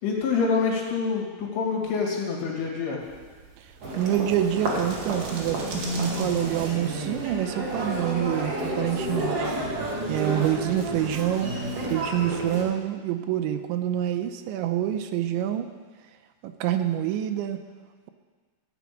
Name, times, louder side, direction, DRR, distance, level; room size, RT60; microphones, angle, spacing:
voice 1, 0.0-3.0 10.4-10.7, left 5 dB, 80° left, -2 dB, 4.9 m, -27 dB
sound 1, 3.0-8.0, right 3 dB, 70° right, 4.1 m, -43 dB
Human voice, 3.8-12.6, right 1 dB, 45° right, 2.3 m, -30 dB
voice 2, 4.0-9.5 10.1-11.5 11.9-15.7 16.4-17.6, right 11 dB, 90° right, 7 dB, 3.0 m, -27 dB
14.5 x 7.1 x 8.6 m, 1.4 s
omnidirectional pair, 5.4 m